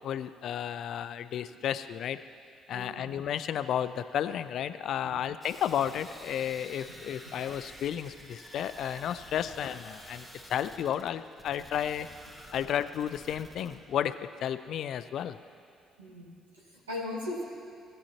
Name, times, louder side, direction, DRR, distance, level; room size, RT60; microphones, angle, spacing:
voice 1, 0.0-2.2 2.7-12.1 12.5-15.4, left 9 dB, 55° left, 13 dB, 0.3 m, -32 dB
voice 2, 2.7-3.2 16.0-17.5, left 2 dB, 80° right, -6 dB, 1.6 m, -39 dB
sound 1, 5.4-13.8, equal, 20° right, 1.8 m, -50 dB
17.0 x 8.1 x 2.9 m, 2.3 s
figure-of-eight pair, 45°, 0 cm